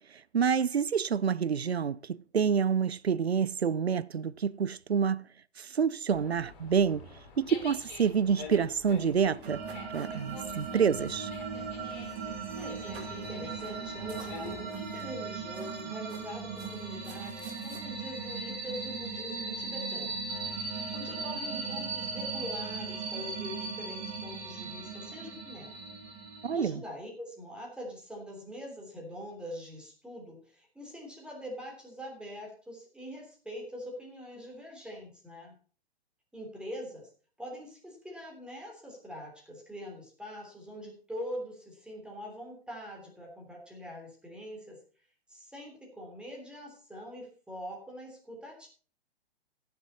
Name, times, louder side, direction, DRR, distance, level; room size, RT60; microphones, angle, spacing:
voice 1, 0.3-5.2 5.6-7.1 7.4-9.6 9.9-11.3 26.4-26.8, right 7 dB, 85° right, 0.5 m, -28 dB
Dog, 6.1-14.6, left 4 dB, 45° left, 3.7 m, -47 dB
sound 1, 8.0-11.6 11.9-12.2 12.5-13.3 13.6-13.8 14.1-15.2 15.5-17.8, right 4 dB, 55° right, 3.4 m, -53 dB
sound 2, 9.4-26.7, right 4 dB, 25° right, 6.2 m, -38 dB
voice 2, 12.5-20.2 20.9-25.8 26.5-35.6 36.3-37.1 37.4-44.8 45.3-48.7, equal, 5° right, 3.3 m, -43 dB
15.5 x 7.0 x 4.1 m
figure-of-eight pair, 120°, 31 cm